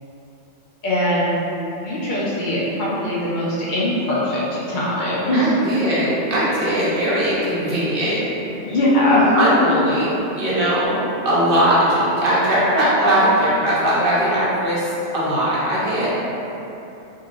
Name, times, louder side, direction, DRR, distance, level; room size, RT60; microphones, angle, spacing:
voice 1, 0.8-1.4 1.7-5.5 6.9-7.0 8.6-9.6 9.9-10.0 11.9-12.1, left 1 dB, 60° left, -7 dB, 0.5 m, -21 dB
voice 2, 5.3-8.2 9.3-16.1, right 1 dB, 50° right, -9 dB, 0.9 m, -19 dB
sound 1, 5.8-10.9, right 1 dB, 85° right, 1.2 m, -34 dB
3.1 x 2.6 x 2.4 m, 3.0 s
omnidirectional pair, 1.3 m